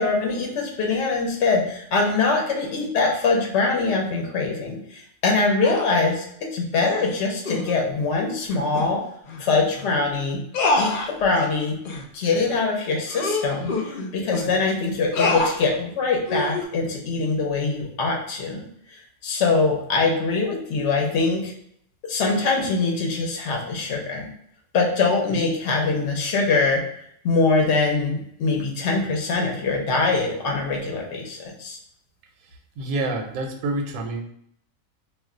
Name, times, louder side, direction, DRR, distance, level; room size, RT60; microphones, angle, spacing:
voice 1, 0.0-6.2 6.5-9.0 9.4-10.4 10.8-11.8 12.1-13.7 14.1-18.6 19.2-21.5 22.0-24.3 24.7-26.8 27.2-31.8, left 3 dB, 60° left, 0 dB, 0.9 m, -23 dB
sound 1, 5.6-6.0 6.8-7.1 7.4-7.7 8.7-8.9 9.3-9.4 9.8-9.9 10.5-11.5 11.9-12.0 12.5-12.6 13.1-14.5 15.1-15.6 16.3-16.7, left 2 dB, 75° left, 0.4 m, -26 dB
voice 2, 32.8-34.2, right 2 dB, 85° right, 3 dB, 1.0 m, -27 dB
2.5 x 2.2 x 3.6 m, 0.69 s
omnidirectional pair, 1.4 m